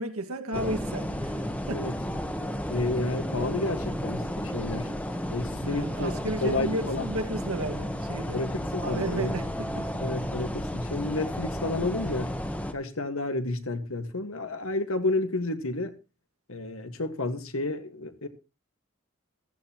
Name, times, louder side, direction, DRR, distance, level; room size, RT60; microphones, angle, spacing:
voice 1, 0.0-1.3 1.7-2.0 5.6-8.4 8.8-9.9, right 1 dB, 90° right, 1.8 m, -33 dB
sound 1, 0.5-12.7, equal, 5° left, 0.9 m, -33 dB
voice 2, 2.7-4.9 5.3-6.1 6.4-7.1 8.3-9.4 10.0-12.3 12.7-15.9 16.5-18.3, left 2 dB, 75° left, 1.6 m, -31 dB
15.5 x 14.5 x 3.0 m
head